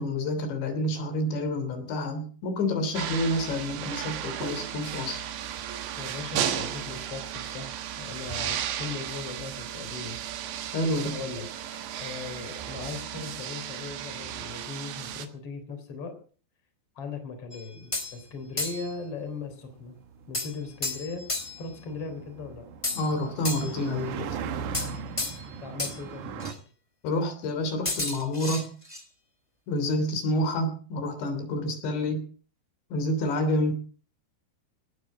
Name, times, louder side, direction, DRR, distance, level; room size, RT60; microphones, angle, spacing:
voice 1, 0.0-5.2 10.7-11.1 23.0-24.3 27.0-28.6 29.7-32.2 32.9-33.8, left 1 dB, 80° left, 8 dB, 5.4 m, -28 dB
sound 1, 2.9-15.3, right 10 dB, 90° right, 3.8 m, -35 dB
voice 2, 6.0-10.2 10.9-11.5 12.0-16.1 17.0-20.0 20.3-21.3 21.6-22.7 25.6-26.5, left 4 dB, 35° left, 6 dB, 4.1 m, -38 dB
sound 2, 17.5-18.2 18.6-18.9 20.3-21.7 22.8-23.9 24.7-25.5 25.8-26.0 26.4-26.6 27.9-29.0, left 2 dB, 15° left, 1.1 m, -32 dB
sound 3, 18.0-26.5, right 7 dB, 65° right, 2.0 m, -39 dB
18.5 x 9.3 x 7.5 m, 0.41 s
omnidirectional pair, 5.0 m